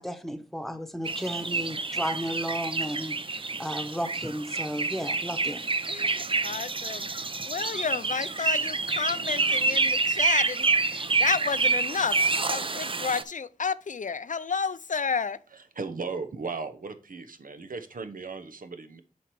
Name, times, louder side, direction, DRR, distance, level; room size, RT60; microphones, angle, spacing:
voice 1, 0.0-5.6, equal, ahead, 1.0 m, -34 dB
sound 1, 1.0-13.2, right 3 dB, 40° right, 0.5 m, -28 dB
voice 2, 5.9-15.4, left 5 dB, 65° left, 0.4 m, -31 dB
voice 3, 15.8-19.0, right 4 dB, 90° right, 0.8 m, -36 dB
7.2 x 4.7 x 4.6 m
wide cardioid pair, 50°, 14 cm